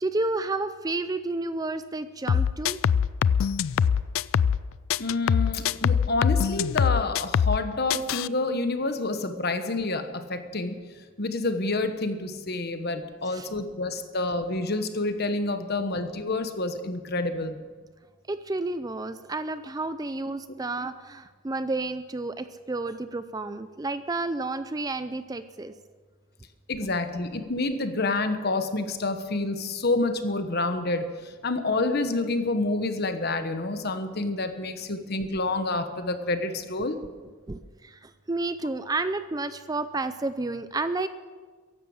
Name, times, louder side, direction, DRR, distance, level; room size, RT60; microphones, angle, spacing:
voice 1, 0.0-2.8 13.3-13.5 18.3-25.7 37.5-41.1, right 2 dB, 15° right, 12 dB, 0.4 m, -31 dB
sound 1, 2.3-4.6 4.9-7.6 7.9-8.3, left 7 dB, 65° left, 0.3 m, -23 dB
voice 2, 5.0-10.8 11.2-17.6 26.7-37.0, left 2 dB, 50° left, 8 dB, 1.2 m, -28 dB
15.0 x 11.0 x 7.1 m, 1.5 s
head